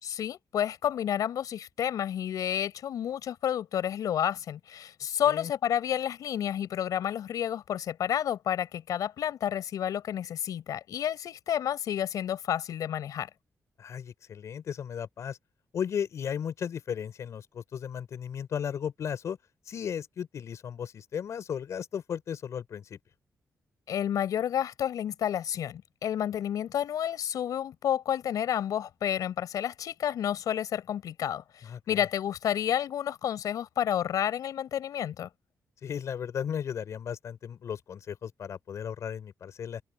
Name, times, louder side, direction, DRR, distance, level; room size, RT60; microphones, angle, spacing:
voice 1, 0.0-13.3 23.9-35.3, left 10 dB, 90° left, 6.2 m, -30 dB
voice 2, 13.8-15.4 15.7-19.4 19.7-23.0 31.6-32.0 35.8-39.8, left 8 dB, 55° left, 5.3 m, -35 dB
wide cardioid pair, 175°, 6 cm